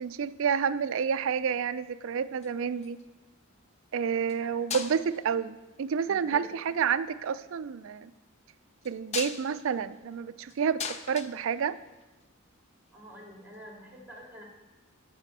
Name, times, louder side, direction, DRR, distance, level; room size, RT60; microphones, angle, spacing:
voice 1, 0.0-3.0 3.9-8.1 8.8-11.8, right 7 dB, 65° right, 14 dB, 0.4 m, -29 dB
sound 1, 2.3-3.1 4.2-4.4 4.7-5.3 6.3-6.7 8.8-12.2 13.5-13.6, left 6 dB, 30° left, 0.5 m, -39 dB
voice 2, 6.1-6.5 12.9-14.4, equal, 10° right, -1 dB, 2.2 m, -47 dB
13.0 x 5.0 x 6.0 m, 1.1 s
head